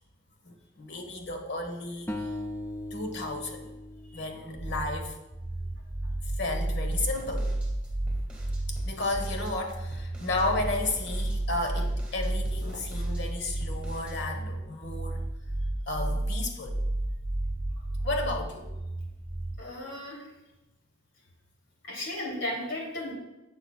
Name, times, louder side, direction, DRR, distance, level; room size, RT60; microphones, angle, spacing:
voice 1, 0.4-2.3 2.9-3.7 4.1-5.2 6.4-7.5 8.8-15.2 15.9-16.8 18.0-18.7, left 2 dB, 60° left, 4 dB, 1.2 m, -33 dB
sound 1, 2.1-5.3, left 1 dB, 10° left, 0.6 m, -39 dB
sound 2, 4.6-19.6, right 1 dB, 20° right, 1.5 m, -32 dB
sound 3, 6.9-14.2, right 1 dB, 5° right, 1.9 m, -44 dB
voice 2, 19.6-20.2 21.8-23.1, left 1 dB, 80° left, -3 dB, 3.1 m, -35 dB
11.5 x 7.9 x 2.4 m, 0.98 s
head